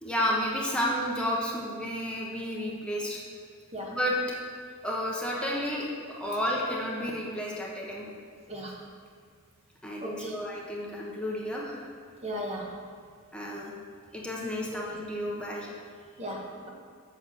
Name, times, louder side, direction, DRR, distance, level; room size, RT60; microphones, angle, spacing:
voice 1, 0.0-3.2 3.9-4.2 4.8-5.9 6.2-8.1 9.8-11.9 13.3-13.7 14.1-15.7, equal, 5° left, -4 dB, 1.0 m, -31 dB
voice 2, 10.0-10.4 12.2-12.7 14.7-14.8 16.2-16.7, equal, 30° right, -1 dB, 1.2 m, -36 dB
7.6 x 5.8 x 6.8 m, 2.1 s
head